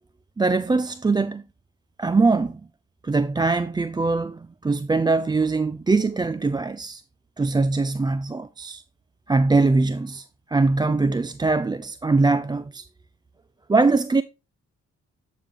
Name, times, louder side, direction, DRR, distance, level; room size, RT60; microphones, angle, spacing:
voice 1, 0.4-1.4 2.0-2.6 3.0-7.0 7.4-8.8 9.3-10.2 10.5-12.8 13.7-14.2, right 3 dB, 15° right, 0.3 m, -22 dB
7.9 x 5.0 x 3.7 m
supercardioid pair, 45°, 33 cm